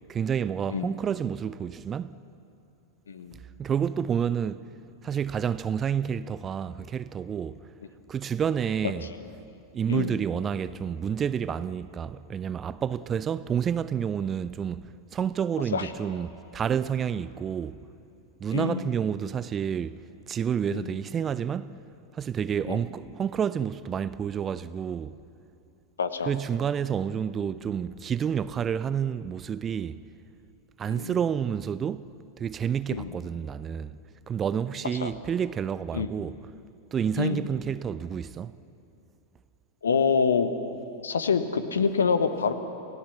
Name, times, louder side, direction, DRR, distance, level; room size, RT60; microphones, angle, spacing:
voice 1, 0.1-2.2 3.6-4.6 5.0-7.6 8.1-9.1 9.7-17.8 18.4-20.0 20.3-21.7 22.1-25.2 26.3-30.0 30.8-32.1 32.4-34.0 34.3-36.4 36.9-38.5, right 8 dB, 25° right, 0.5 m, -29 dB
voice 2, 3.1-3.4 9.0-9.1 9.9-10.2 15.7-15.9 18.5-18.9 20.7-20.9 22.7-22.8 26.0-26.3 30.9-31.2 32.9-33.2 35.0-35.1 35.9-36.1 37.2-37.5 39.8-40.5 41.0-42.5, left 5 dB, 70° left, 1.3 m, -26 dB
28.5 x 17.5 x 7.2 m
figure-of-eight pair, 90°, 0 cm